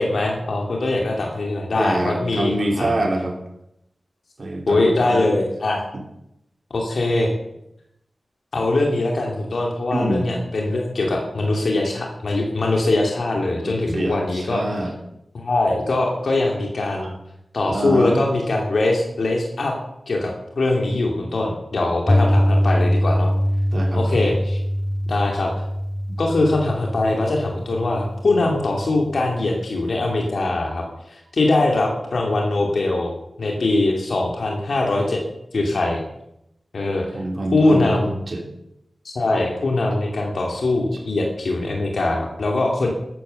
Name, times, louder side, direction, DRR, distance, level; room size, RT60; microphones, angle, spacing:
voice 1, 0.0-3.0 4.7-5.8 6.7-7.3 8.5-14.6 15.3-17.1 17.5-19.7 20.1-23.3 23.9-24.6 25.1-25.5 26.2-33.1 33.4-35.2 35.5-36.0 36.7-37.0 37.5-38.2 39.0-42.9, left 2 dB, 70° left, 0 dB, 2.8 m, -22 dB
voice 2, 1.7-3.3 4.4-5.2 9.9-10.3 13.6-14.9 17.0-17.1 17.7-18.2 23.7-24.0 26.1-26.2 37.1-38.0 38.3-38.4, right 1 dB, 45° right, 0 dB, 3.3 m, -25 dB
Piano, 22.1-30.2, equal, 15° left, 0.7 m, -23 dB
13.5 x 11.5 x 6.9 m, 0.81 s
wide cardioid pair, 115°, 0 cm